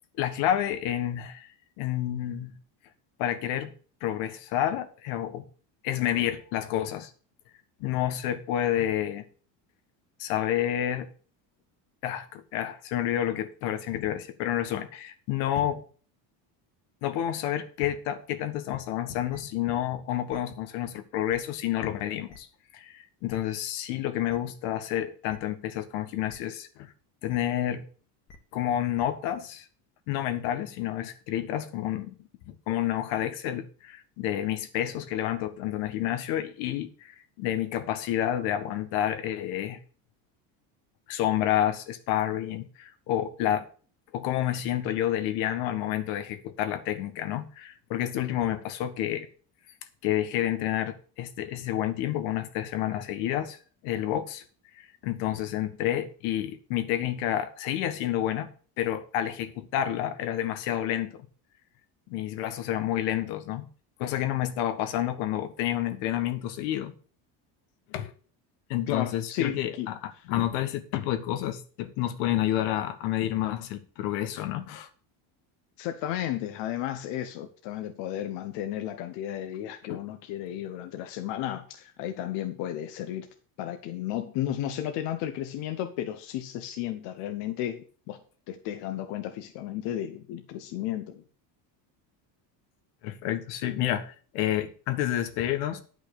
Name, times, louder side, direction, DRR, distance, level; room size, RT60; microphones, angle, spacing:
voice 1, 0.2-1.5 1.8-2.6 3.2-3.7 4.0-5.5 5.8-7.1 7.8-9.2 10.2-11.1 12.0-15.8 17.0-22.5 22.7-26.9 27.2-27.8 28.5-29.6 30.1-32.1 32.4-39.8 41.1-43.6 44.1-49.3 50.0-53.6 53.8-54.4 54.7-58.5 58.8-61.3 62.1-63.7 64.0-66.9 67.9-68.1 68.7-74.9 79.9-80.0 93.0-95.8, left 12 dB, 90° left, 1.6 m, -29 dB
sound 1, 19.3-19.4 20.3-20.4 21.3-21.4 22.3-22.4 23.3-23.4 24.3-24.4 25.3-25.4 26.3-26.4 27.3-27.4 28.3-28.4 29.0-29.1, left 3 dB, 35° left, 1.7 m, -49 dB
voice 2, 68.9-69.9 70.2-70.3 75.8-83.3 83.6-88.2 88.5-91.2, left 11 dB, 70° left, 1.2 m, -33 dB
10.5 x 5.9 x 6.8 m
cardioid pair, 165°, 45 cm